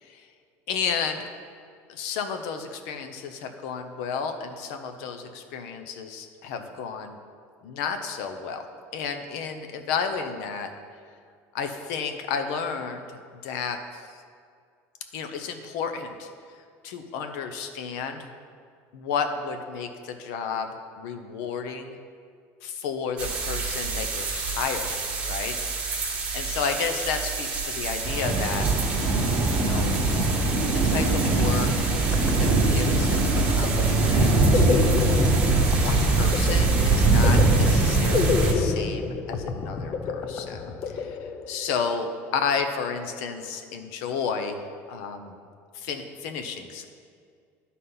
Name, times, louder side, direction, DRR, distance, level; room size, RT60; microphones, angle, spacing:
voice 1, 0.7-1.3 1.9-7.2 7.6-8.6 8.9-10.7 11.5-13.0 13.3-14.2 15.1-16.3 16.8-18.3 18.9-20.7 21.0-22.0 22.6-25.6 25.9-28.7 29.5-30.1 30.7-32.0 32.4-35.0 35.8-40.6 40.9-41.2 41.5-45.4 45.7-46.8, left 6 dB, 70° left, 7 dB, 0.7 m, -32 dB
sound 1, 23.2-38.5, right 3 dB, 20° right, 1.3 m, -23 dB
sound 2, 31.2-41.8, left 5 dB, 30° left, 0.4 m, -30 dB
11.0 x 4.2 x 5.5 m, 2.2 s
cardioid pair, 175°, 6 cm